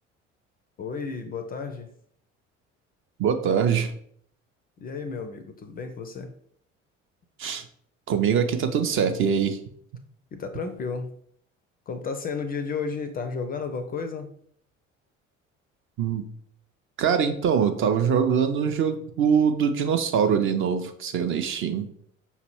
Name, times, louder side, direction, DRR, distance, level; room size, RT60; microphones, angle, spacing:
voice 1, 0.8-1.9 4.8-6.3 10.3-11.1 11.9-14.3, left 5 dB, 25° left, 8 dB, 0.4 m, -32 dB
voice 2, 3.2-3.9 7.4-7.6 8.1-9.6 16.0-16.2 17.0-21.9, right 7 dB, 35° right, 7 dB, 0.4 m, -23 dB
5.4 x 2.9 x 3.0 m, 0.63 s
figure-of-eight pair, 55°, 38 cm